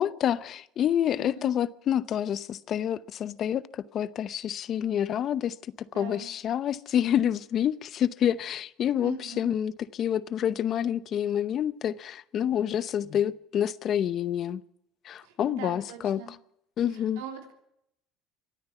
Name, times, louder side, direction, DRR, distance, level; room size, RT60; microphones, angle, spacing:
voice 1, 0.0-14.6 15.0-16.2 16.8-17.2, left 10 dB, 50° left, 0.7 m, -28 dB
voice 2, 1.2-1.5 5.9-6.3 9.0-9.5 15.2-16.3 16.9-17.5, right 8 dB, 90° right, 3.4 m, -42 dB
24.5 x 9.4 x 5.9 m
supercardioid pair, 105°, 0 cm